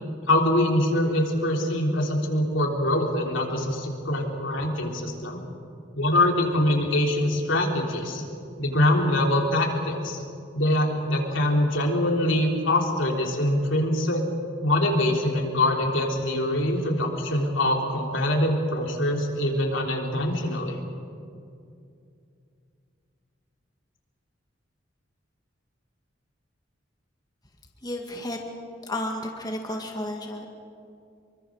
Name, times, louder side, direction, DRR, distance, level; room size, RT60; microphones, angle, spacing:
voice 1, 0.3-5.4 6.0-8.2 8.6-10.2 10.5-14.2 14.6-20.8, left 1 dB, 85° left, 0 dB, 3.5 m, -24 dB
voice 2, 27.8-28.4 28.8-30.4, left 1 dB, 20° left, 1 dB, 2.0 m, -32 dB
25.0 x 23.5 x 6.4 m, 2.5 s
head